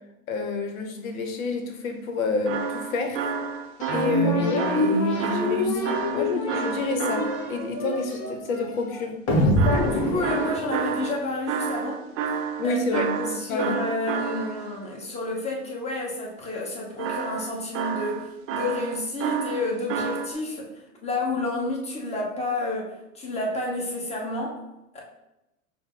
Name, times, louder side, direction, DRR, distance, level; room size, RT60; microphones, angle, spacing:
voice 1, 0.3-3.2 3.9-9.1 12.6-13.8, left 3 dB, 85° left, 5 dB, 0.8 m, -29 dB
sound 1, 2.5-7.7 9.6-14.8 17.0-20.3, right 6 dB, 35° right, 0.4 m, -30 dB
sound 2, 3.8-11.3, left 1 dB, 40° left, 1.3 m, -26 dB
voice 2, 9.6-12.0 12.6-24.6 24.9-25.0, left 2 dB, 15° left, -2 dB, 1.1 m, -30 dB
5.5 x 2.1 x 3.8 m, 0.92 s
hypercardioid pair, 110°, 40 cm